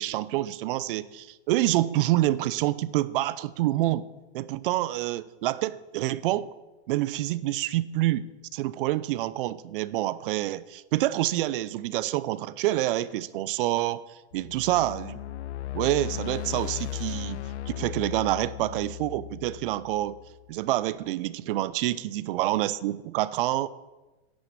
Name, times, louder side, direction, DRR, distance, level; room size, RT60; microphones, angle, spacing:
voice 1, 0.0-4.1 4.3-6.5 6.9-14.1 14.3-15.2 15.7-20.2 20.5-23.7, right 15 dB, 55° right, 0.6 m, -27 dB
sound 1, 14.3-20.5, left 14 dB, 85° left, 0.7 m, -37 dB
10.5 x 7.6 x 8.6 m
hypercardioid pair, 135°, 33 cm